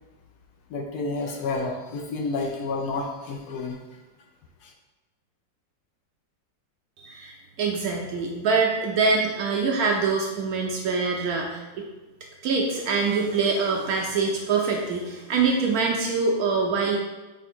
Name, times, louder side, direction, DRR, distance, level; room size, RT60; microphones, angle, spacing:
voice 1, 0.7-3.8 4.6-4.7, left 3 dB, 70° left, 2 dB, 1.0 m, -30 dB
voice 2, 7.0-11.8 12.4-17.0, right 4 dB, 70° right, 0 dB, 0.9 m, -24 dB
3.6 x 3.4 x 4.3 m, 1.1 s
omnidirectional pair, 1.9 m